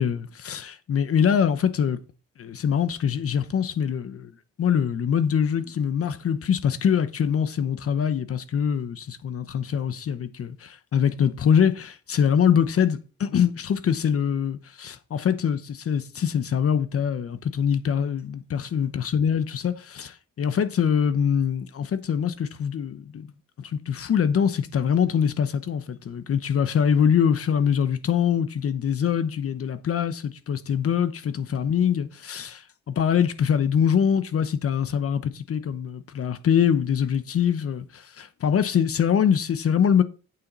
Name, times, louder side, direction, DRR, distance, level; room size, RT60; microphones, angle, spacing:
voice 1, 0.0-2.0 2.4-4.3 4.6-23.3 23.6-40.0, left 8 dB, 50° left, 0.9 m, -24 dB
8.7 x 7.0 x 4.0 m
cardioid pair, 90°, 30 cm